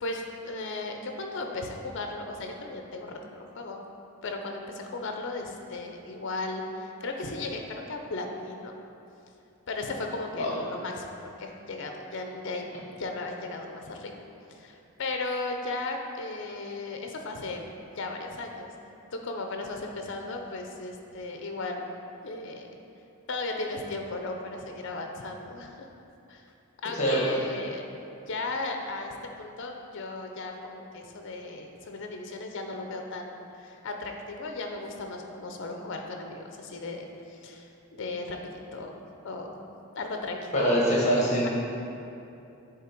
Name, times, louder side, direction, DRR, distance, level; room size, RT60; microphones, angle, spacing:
voice 1, 0.0-3.8 4.2-8.8 9.7-12.7 13.0-17.6 17.9-18.7 19.1-21.8 22.2-22.7 23.3-25.9 26.3-26.4 26.8-27.8 28.3-39.0 39.2-39.5 39.9-40.6 41.4-41.5, left 2 dB, 55° left, 3 dB, 0.5 m, -36 dB
voice 2, 40.5-41.5, equal, 30° left, -4 dB, 1.2 m, -23 dB
7.3 x 3.3 x 4.4 m, 2.7 s
head